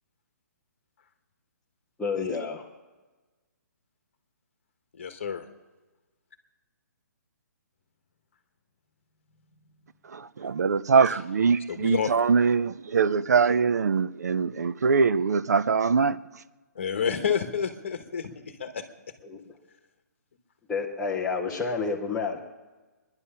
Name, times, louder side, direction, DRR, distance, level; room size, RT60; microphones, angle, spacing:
voice 1, 2.0-2.7 19.2-19.4 20.7-22.4, left 4 dB, 5° left, 0.5 m, -29 dB
voice 2, 5.0-5.4 11.1-11.2 11.7-12.2 16.7-18.8, left 7 dB, 40° left, 1.3 m, -29 dB
voice 3, 10.1-16.2, right 5 dB, 65° right, 0.6 m, -23 dB
23.5 x 11.0 x 5.6 m
hypercardioid pair, 180°, 10 cm